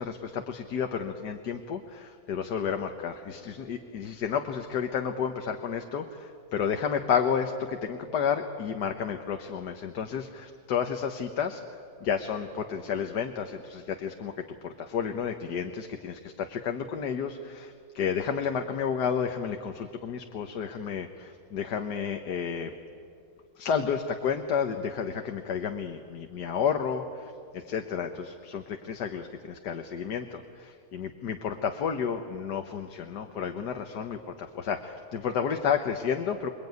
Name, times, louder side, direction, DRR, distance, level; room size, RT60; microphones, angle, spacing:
voice 1, 0.0-11.6 12.0-14.3 14.6-22.7 23.6-36.5, left 7 dB, 70° left, 5 dB, 1.7 m, -31 dB
27.5 x 22.5 x 9.4 m, 2.4 s
omnidirectional pair, 1.9 m